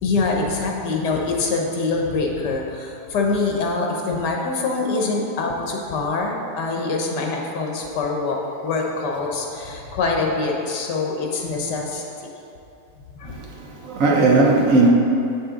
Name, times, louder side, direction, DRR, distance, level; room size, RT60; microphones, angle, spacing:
voice 1, 0.0-12.3 13.2-13.4, left 3 dB, 80° left, 1.5 m, -24 dB
voice 2, 13.2-14.9, right 3 dB, 60° right, 1.0 m, -18 dB
7.7 x 6.0 x 3.7 m
omnidirectional pair, 1.8 m